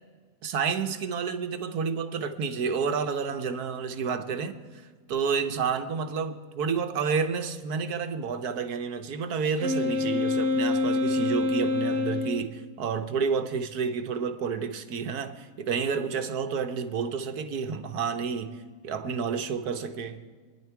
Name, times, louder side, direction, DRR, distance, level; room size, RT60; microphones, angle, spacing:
voice 1, 0.4-4.8 5.1-20.2, right 6 dB, 65° right, 9 dB, 1.4 m, -30 dB
Wind instrument woodwind instrument, 9.6-12.5, left 3 dB, 45° right, 1.1 m, -26 dB
27.5 x 10.5 x 4.6 m, 1.5 s
omnidirectional pair, 1.8 m